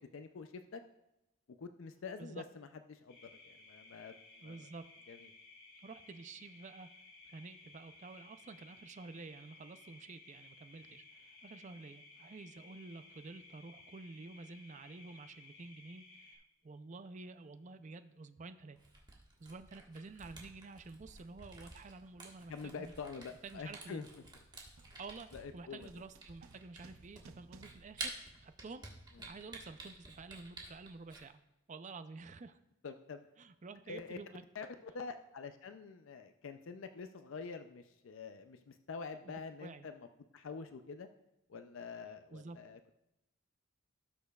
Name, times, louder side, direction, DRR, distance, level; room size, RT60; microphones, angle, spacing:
voice 1, 0.1-0.8 1.6-3.2 3.4-4.7 5.1-5.2 22.5-24.1 25.3-25.9 32.8-33.3 33.9-34.2 34.5-40.1 40.3-41.1 41.5-42.8, left 5 dB, 65° left, 8 dB, 0.4 m, -46 dB
sound 1, 3.1-16.4, left 3 dB, 90° left, 3.1 m, -58 dB
voice 2, 4.4-4.8 5.8-6.9 7.2-18.8 19.4-22.9 23.4-24.0 25.0-28.9 29.1-31.4 31.7-32.6 33.4-34.4 39.6-39.9 42.3-42.6, right 3 dB, 35° right, 11 dB, 0.4 m, -50 dB
sound 2, 18.7-18.9 19.8-20.1 20.4-28.9, right 4 dB, 90° right, 0.6 m, -64 dB
Camera, 18.8-31.2, right 3 dB, 20° right, 1.4 m, -51 dB
17.0 x 6.6 x 2.3 m, 0.91 s
head